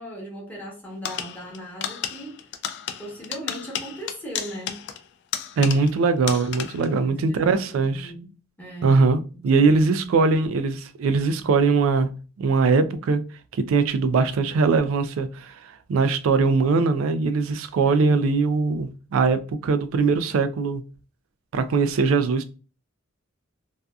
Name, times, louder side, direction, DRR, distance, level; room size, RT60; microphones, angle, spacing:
voice 1, 0.0-2.5 3.0-4.8 6.9-8.3 8.6-9.0 9.3-10.3 17.8-18.3, equal, 10° left, 0.9 m, -38 dB
sound 1, 1.0-6.0 6.3-6.9, left 9 dB, 60° left, 0.3 m, -33 dB
voice 2, 5.6-7.9 8.8-9.2 9.4-12.1 12.4-13.2 13.7-15.6 15.9-20.8 21.5-22.5, right 4 dB, 90° right, 0.3 m, -21 dB
2.6 x 2.3 x 2.2 m
head